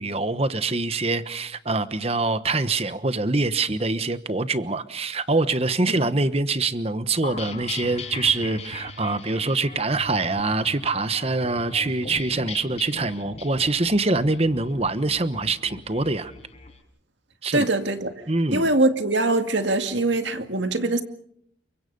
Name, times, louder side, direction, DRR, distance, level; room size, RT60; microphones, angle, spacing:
voice 1, 0.0-16.3 17.4-17.6 18.3-18.7, right 3 dB, 30° right, 12 dB, 1.2 m, -24 dB
sound 1, 7.2-16.7, left 3 dB, 35° left, 5.9 m, -39 dB
voice 2, 17.5-18.1 18.5-21.0, right 2 dB, 70° right, 7 dB, 2.1 m, -22 dB
29.5 x 24.0 x 5.4 m, 0.69 s
head